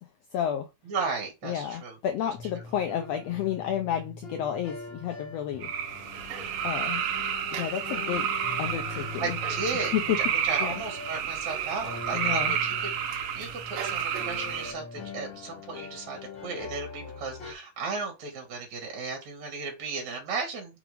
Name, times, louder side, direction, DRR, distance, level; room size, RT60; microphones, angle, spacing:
voice 1, 0.3-0.7 1.4-5.7 6.6-7.0 7.5-8.3 8.6-9.3 9.9-10.2 10.6-10.7 12.1-12.5, left 10 dB, 75° left, 1.6 m, -31 dB
voice 2, 0.8-2.0 2.6-2.7 9.2-20.8, right 4 dB, 60° right, 3.3 m, -35 dB
sound 1, 2.3-17.5, left 4 dB, 40° left, 2.3 m, -43 dB
sound 2, 5.6-14.7, right 8 dB, 90° right, 2.7 m, -30 dB
6.1 x 4.9 x 3.5 m
omnidirectional pair, 3.6 m